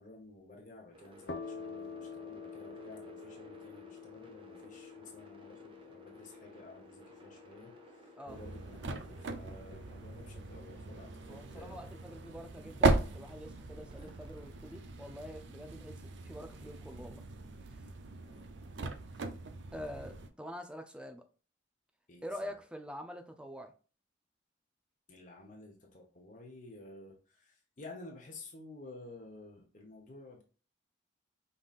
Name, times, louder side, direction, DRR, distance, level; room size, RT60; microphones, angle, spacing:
voice 1, 0.0-11.8 13.8-14.2 18.2-18.5 19.1-19.2 19.6-20.1 22.1-22.5 25.1-30.4, left 2 dB, 45° left, 1.0 m, -52 dB
sound 1, 0.9-13.3 13.9-16.0, equal, 30° right, 0.9 m, -58 dB
sound 2, 1.3-8.7, left 5 dB, 65° left, 0.7 m, -48 dB
sound 3, 8.3-20.3, right 3 dB, 70° right, 0.6 m, -37 dB
voice 2, 11.3-17.2 19.7-21.2 22.2-23.7, equal, 5° right, 0.5 m, -46 dB
5.5 x 3.9 x 2.4 m
head